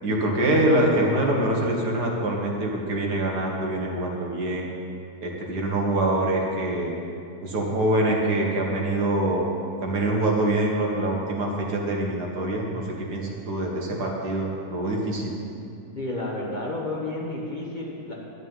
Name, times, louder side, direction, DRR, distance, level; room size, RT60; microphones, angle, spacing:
voice 1, 0.0-4.7 5.2-6.9 7.4-9.5 9.8-12.8 13.1-15.3, right 1 dB, 70° right, -1 dB, 2.1 m, -24 dB
voice 2, 15.9-18.1, left 2 dB, 30° left, -3 dB, 1.4 m, -31 dB
11.0 x 6.2 x 9.0 m, 2.5 s
omnidirectional pair, 1.8 m